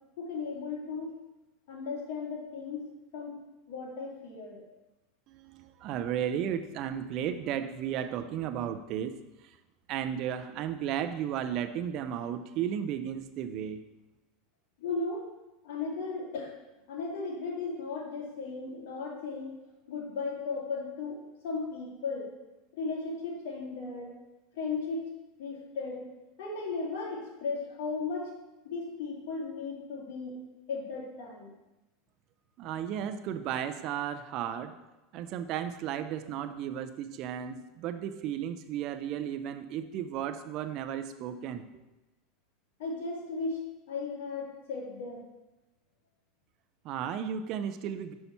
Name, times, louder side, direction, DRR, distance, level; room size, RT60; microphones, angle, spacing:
voice 1, 0.2-1.1 1.7-2.8 3.1-3.3 3.7-4.6 14.8-15.3 15.6-16.5 16.9-19.5 19.9-22.3 22.7-24.1 24.5-25.0 25.4-26.1 26.4-28.3 28.6-30.4 30.7-31.5 42.8-43.6 43.9-45.2, left 4 dB, 75° left, -2 dB, 2.0 m, -36 dB
voice 2, 5.3-9.2 9.4-9.6 9.9-13.8 32.6-34.8 35.1-41.7 46.8-48.1, right 9 dB, 50° right, 9 dB, 0.4 m, -34 dB
5.7 x 5.6 x 4.2 m, 1.0 s
supercardioid pair, 130°, 0 cm